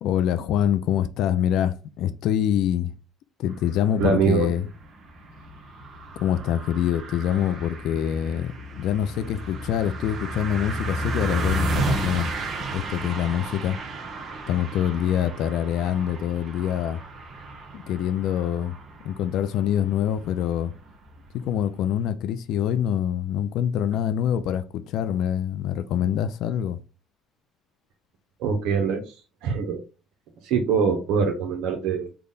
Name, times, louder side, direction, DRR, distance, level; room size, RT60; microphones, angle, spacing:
voice 1, 0.0-2.9 3.4-4.7 6.2-12.3 12.7-13.8 14.5-17.0 17.7-18.7 19.0-20.7 21.3-26.8, left 10 dB, 70° left, 0.3 m, -25 dB
sound 1, 3.5-22.1, right 1 dB, 50° right, 0.8 m, -33 dB
voice 2, 4.0-4.5 28.4-29.1 29.4-29.8 30.4-32.2, right 5 dB, 75° right, 0.6 m, -23 dB
3.5 x 2.1 x 3.8 m
supercardioid pair, 90°, 0 cm